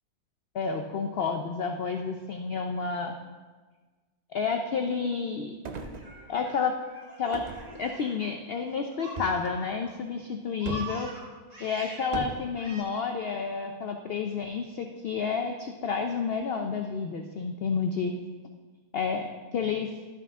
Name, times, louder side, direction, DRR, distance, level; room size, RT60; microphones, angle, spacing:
voice 1, 0.5-3.2 4.3-5.6 6.3-6.7 7.2-7.4 7.8-11.1 11.6-18.2 18.9-20.0, left 5 dB, 70° left, 5 dB, 0.5 m, -30 dB
sound 1, 5.6-6.6 7.3-8.3 9.2-9.6 10.6-11.0 12.1-12.5, right 4 dB, 90° right, 0.3 m, -38 dB
Laughter, 5.8-9.9 10.2-12.1 12.6-12.8, right 1 dB, 30° right, 1.3 m, -44 dB
12.0 x 5.8 x 3.6 m, 1.3 s
omnidirectional pair, 1.6 m